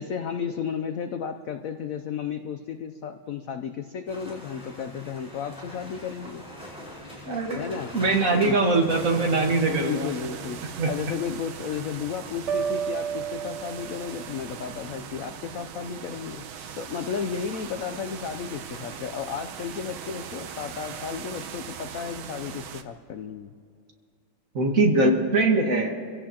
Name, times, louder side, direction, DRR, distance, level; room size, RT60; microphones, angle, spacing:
voice 1, 0.0-6.4 7.5-7.9 8.3-8.6 9.7-10.6 10.9-23.5 25.0-25.1, left 7 dB, 80° left, 8 dB, 0.7 m, -33 dB
sound 1, 4.1-21.2, equal, 5° right, 4.8 m, -46 dB
voice 2, 7.3-10.1 10.8-10.9 24.6-26.0, right 2 dB, 45° right, 2 dB, 1.7 m, -22 dB
sound 2, 8.9-22.8, right 8 dB, 90° right, 1.7 m, -40 dB
sound 3, 12.5-14.4, right 7 dB, 65° right, 0.7 m, -31 dB
27.0 x 16.5 x 2.9 m, 2.3 s
omnidirectional pair, 2.2 m